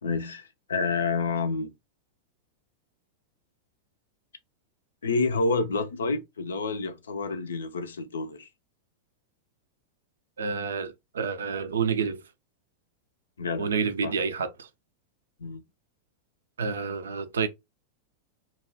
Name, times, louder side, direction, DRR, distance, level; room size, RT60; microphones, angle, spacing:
voice 1, 0.0-1.7 5.0-8.5 13.4-13.7 14.0-14.1 15.4-15.6, left 4 dB, 70° left, 0.4 m, -29 dB
voice 2, 10.4-12.2 13.6-14.7 16.6-17.5, right 5 dB, 65° right, 0.4 m, -29 dB
2.3 x 2.3 x 3.2 m
figure-of-eight pair, 90°, 0 cm